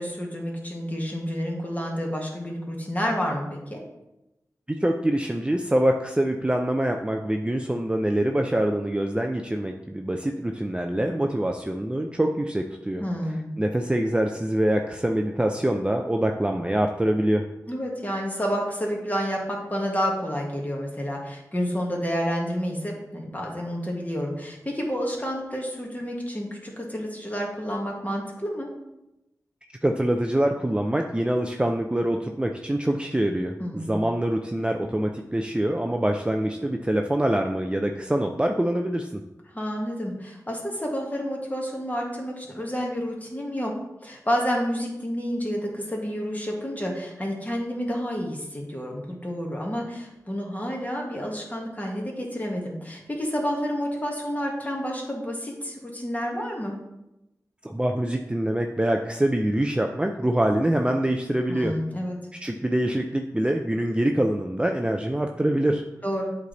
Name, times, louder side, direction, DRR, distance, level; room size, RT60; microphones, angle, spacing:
voice 1, 0.0-3.8 13.0-13.5 17.7-28.7 33.6-34.0 39.5-43.7 44.0-56.8 61.5-62.2 66.0-66.4, equal, 25° left, -1 dB, 1.7 m, -29 dB
voice 2, 4.8-13.0 13.6-17.5 29.8-39.2 57.6-61.7 62.4-65.8, right 1 dB, 15° right, 3 dB, 0.5 m, -25 dB
8.2 x 3.3 x 4.0 m, 0.93 s
cardioid pair, 45°, 7 cm